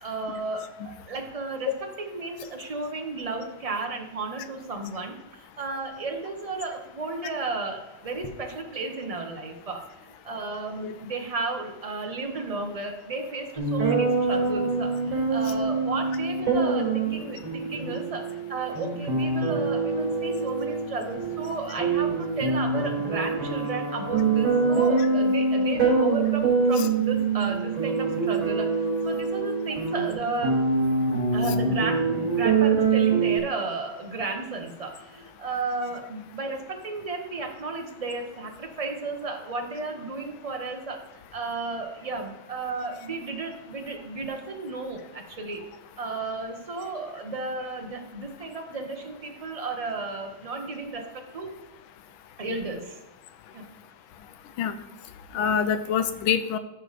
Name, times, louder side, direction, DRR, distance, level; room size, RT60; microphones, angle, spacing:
voice 1, 0.0-28.7 29.0-30.6 31.3-41.0 41.3-45.6 46.0-51.5 52.4-53.0 53.5-53.7, right 3 dB, 35° right, 3 dB, 0.6 m, -33 dB
sound 1, 13.6-33.4, right 4 dB, 70° right, 4.6 m, -25 dB
voice 2, 55.3-56.6, left 8 dB, 80° left, 11 dB, 1.5 m, -26 dB
13.5 x 4.9 x 4.1 m, 0.95 s
omnidirectional pair, 2.2 m